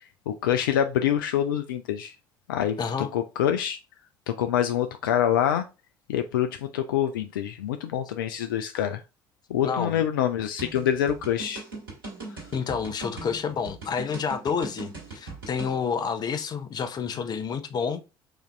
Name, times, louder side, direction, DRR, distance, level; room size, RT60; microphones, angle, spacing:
voice 1, 0.3-2.1 2.5-3.8 4.3-5.7 6.1-9.0 9.5-11.6, left 10 dB, 70° left, 0.4 m, -26 dB
voice 2, 2.8-3.1 9.6-10.0 12.5-18.0, left 6 dB, 40° left, 0.7 m, -29 dB
sound 1, 10.6-15.7, right 3 dB, 80° right, 2.0 m, -39 dB
4.9 x 2.6 x 3.2 m
figure-of-eight pair, 55°, 11 cm